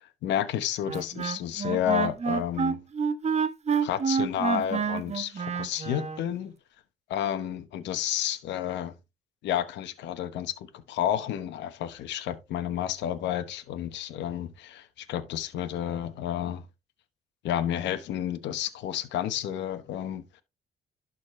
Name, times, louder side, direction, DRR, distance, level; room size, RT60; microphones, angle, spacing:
voice 1, 0.0-2.8 3.8-6.5 7.1-8.9 9.4-16.6 17.4-20.4, left 10 dB, 90° left, 1.1 m, -31 dB
Wind instrument woodwind instrument, 0.9-6.2, right 6 dB, 40° right, 0.9 m, -28 dB
12.0 x 4.1 x 3.2 m
cardioid pair, 85°, 18 cm